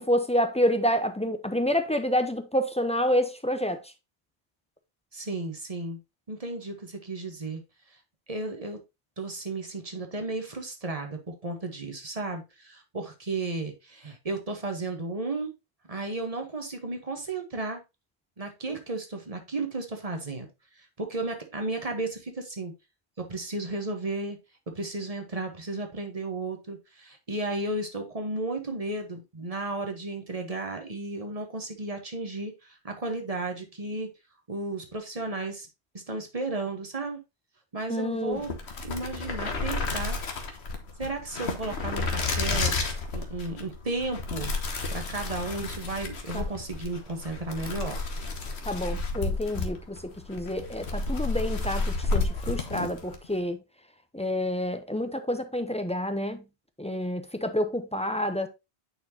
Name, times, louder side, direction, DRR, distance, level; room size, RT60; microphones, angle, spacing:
voice 1, 0.0-3.9 37.9-38.4 46.3-46.5 48.7-53.6 54.1-56.4 56.8-58.5, equal, 10° left, 0.3 m, -28 dB
voice 2, 5.1-6.0 6.3-7.6 8.3-8.8 9.2-15.5 15.9-17.8 18.4-20.5 20.8-22.7 23.2-24.4 24.7-34.1 34.5-35.7 35.9-37.2 37.7-38.6 38.8-40.2 41.0-42.7 43.1-44.6 44.9-48.0, right 2 dB, 35° right, 1.2 m, -34 dB
sound 1, 38.3-53.2, left 3 dB, 75° left, 1.3 m, -31 dB
9.1 x 4.3 x 2.8 m
omnidirectional pair, 1.1 m